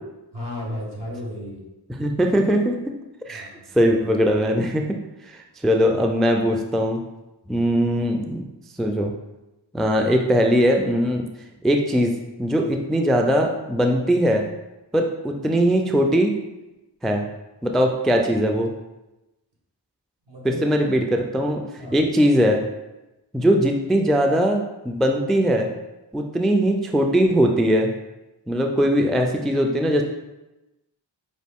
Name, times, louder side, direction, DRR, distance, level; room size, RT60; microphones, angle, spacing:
voice 1, 0.3-1.6 3.3-3.7 20.3-20.6 21.8-22.0, left 1 dB, 70° right, -4 dB, 1.4 m, -34 dB
voice 2, 2.0-2.8 3.3-3.5 3.7-4.9 5.3-7.0 7.5-8.4 8.8-9.1 9.7-11.3 11.6-12.1 12.4-14.4 14.9-16.4 17.0-17.3 17.6-18.7 20.4-22.6 23.3-25.7 26.1-27.9 28.5-30.0, equal, ahead, 3 dB, 0.3 m, -20 dB
5.1 x 2.3 x 3.5 m, 1.0 s
wide cardioid pair, 40°, 43 cm